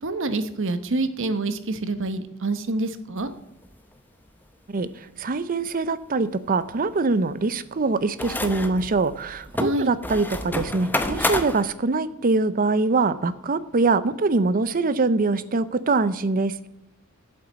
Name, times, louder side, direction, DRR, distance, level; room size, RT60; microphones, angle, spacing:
voice 1, 0.0-3.3 9.6-9.9, right 2 dB, 60° right, 10 dB, 1.0 m, -26 dB
sound 1, 3.2-3.3 3.6-3.7 8.2-11.6, left 1 dB, 10° left, 0.7 m, -29 dB
voice 2, 5.2-16.7, right 3 dB, 40° right, 15 dB, 0.6 m, -23 dB
8.3 x 7.8 x 7.0 m, 0.86 s
head